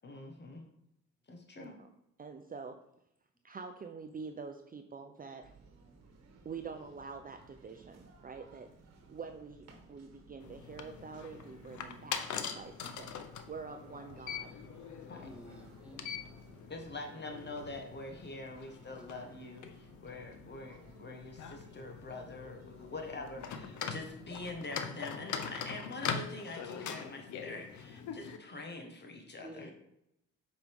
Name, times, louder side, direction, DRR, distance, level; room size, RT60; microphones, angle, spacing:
voice 1, 0.0-0.6 1.3-1.8 15.1-15.3 16.7-29.7, left 2 dB, 35° left, 3 dB, 1.5 m, -45 dB
voice 2, 1.6-1.9 2.2-2.8 3.4-5.5 6.4-8.7 9.1-13.1 13.5-14.5 15.9-16.1, right 5 dB, 30° right, 6 dB, 0.6 m, -46 dB
sound 1, 5.4-24.6, right 3 dB, 60° right, 1.6 m, -59 dB
sound 2, 10.4-28.4, left 7 dB, 75° left, 0.8 m, -43 dB
voice 3, 15.1-16.1 29.4-29.7, equal, 5° right, 1 dB, 1.7 m, -50 dB
7.7 x 5.3 x 3.6 m, 0.79 s
cardioid pair, 90°, 30 cm